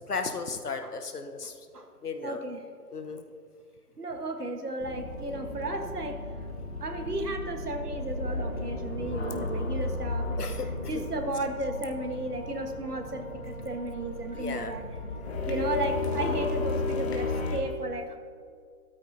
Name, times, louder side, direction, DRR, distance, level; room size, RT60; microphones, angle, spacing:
voice 1, 0.1-1.5 2.0-2.4 2.9-3.2 10.4-10.7 10.9-11.1 14.3-14.7, left 4 dB, 85° left, 7 dB, 1.1 m, -34 dB
voice 2, 2.2-2.7 4.0-6.3 6.8-10.4 10.9-14.8 15.5-18.2, right 1 dB, 90° right, 5 dB, 1.6 m, -34 dB
sound 1, 4.8-17.6, left 2 dB, 45° left, 1.8 m, -34 dB
14.0 x 12.5 x 2.8 m, 2.2 s
figure-of-eight pair, 135°, 45 cm